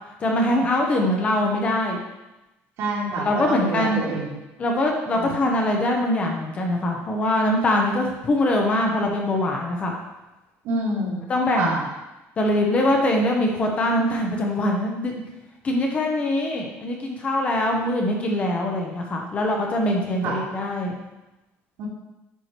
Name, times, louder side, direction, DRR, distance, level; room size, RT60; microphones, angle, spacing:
voice 1, 0.2-2.0 3.2-4.1 4.6-9.9 11.3-11.8 12.4-15.2 15.6-21.0, left 1 dB, 25° left, 1 dB, 1.0 m, -23 dB
voice 2, 2.8-4.4 5.1-5.4 10.6-11.2 11.6-11.8 20.2-20.4 21.8-21.9, right 2 dB, 65° right, -3 dB, 2.4 m, -27 dB
9.2 x 4.9 x 4.5 m, 1.0 s
cardioid pair, 180°, 5 cm